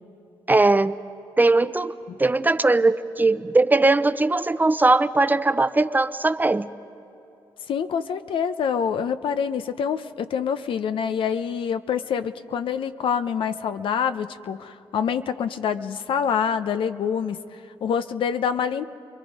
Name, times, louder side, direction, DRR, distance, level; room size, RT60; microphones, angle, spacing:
voice 1, 0.5-1.0 1.4-1.9 2.2-6.7, right 2 dB, 20° right, 13 dB, 0.7 m, -19 dB
voice 2, 7.7-18.8, left 7 dB, 75° left, 11 dB, 0.7 m, -26 dB
28.5 x 22.0 x 5.2 m, 2.8 s
cardioid pair, 65°, 9 cm